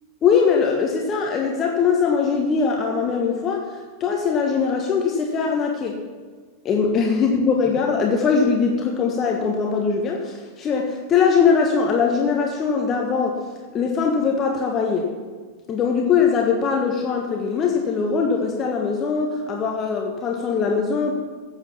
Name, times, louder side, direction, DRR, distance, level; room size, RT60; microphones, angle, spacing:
voice 1, 0.2-6.0 6.6-13.4 13.7-15.1 15.7-21.1, left 5 dB, 30° left, 1 dB, 1.4 m, -21 dB
14.5 x 7.9 x 5.9 m, 1.4 s
figure-of-eight pair, 90°, 0 cm